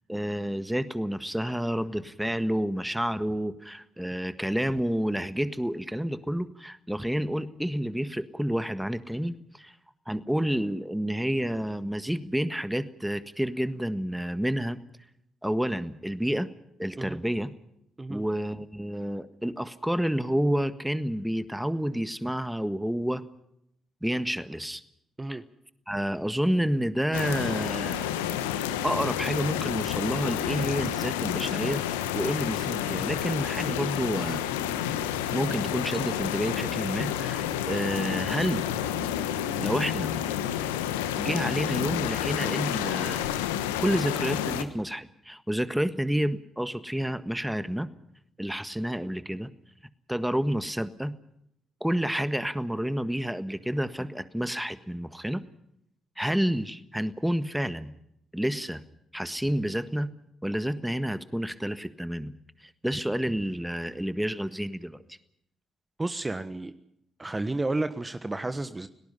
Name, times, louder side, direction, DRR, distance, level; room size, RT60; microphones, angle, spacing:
voice 1, 0.1-9.7 10.1-14.8 15.4-16.5 16.8-17.5 18.1-23.2 24.0-24.8 25.3-25.4 25.9-28.1 28.8-34.4 35.3-38.6 39.6-40.1 41.2-43.2 43.8-47.9 48.4-49.5 50.1-51.1 51.8-55.4 56.2-57.9 58.3-58.8 59.1-60.1 60.4-62.3 62.6-65.2, equal, 5° right, 12 dB, 1.6 m, -29 dB
sound 1, 27.1-44.6, left 10 dB, 85° left, 1.2 m, -30 dB
voice 2, 66.0-66.7 67.2-68.9, right 2 dB, 20° right, 11 dB, 1.3 m, -31 dB
29.5 x 18.5 x 5.7 m, 0.77 s
hypercardioid pair, 45°, 0 cm